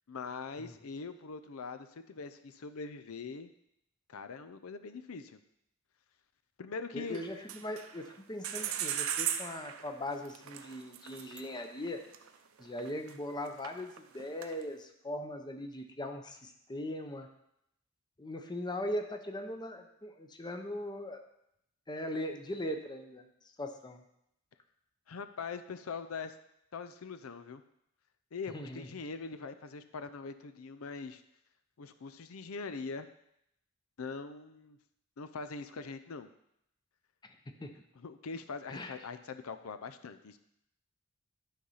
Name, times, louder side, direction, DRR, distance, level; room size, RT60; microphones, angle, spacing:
voice 1, 0.1-3.5 4.1-5.4 6.6-7.2 25.1-26.3 26.7-27.6 28.3-31.2 31.8-33.1 34.0-34.8 35.2-36.3 38.0-40.4, left 4 dB, 90° left, 11 dB, 0.5 m, -42 dB
voice 2, 6.9-12.1 12.6-17.3 18.2-21.2 21.9-23.2 23.6-24.0 28.5-28.9 37.6-37.7 38.7-38.9, left 1 dB, 20° left, 5 dB, 0.7 m, -39 dB
sound 1, 7.1-8.2 8.4-13.1 13.4-14.6, right 9 dB, 80° right, 0.7 m, -38 dB
11.5 x 4.0 x 5.6 m, 0.78 s
head